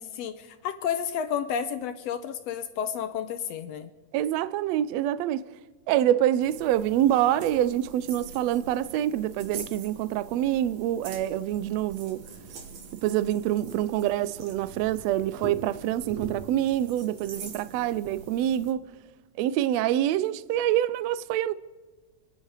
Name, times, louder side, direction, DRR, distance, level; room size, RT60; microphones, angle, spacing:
voice 1, 0.2-3.9, left 8 dB, 80° left, 1.5 m, -31 dB
voice 2, 4.1-5.4 5.9-12.2 13.0-18.8 19.4-21.5, right 12 dB, 85° right, 1.5 m, -26 dB
sound 1, 6.4-18.7, right 4 dB, 55° right, 2.7 m, -43 dB
28.5 x 10.5 x 4.9 m
omnidirectional pair, 3.7 m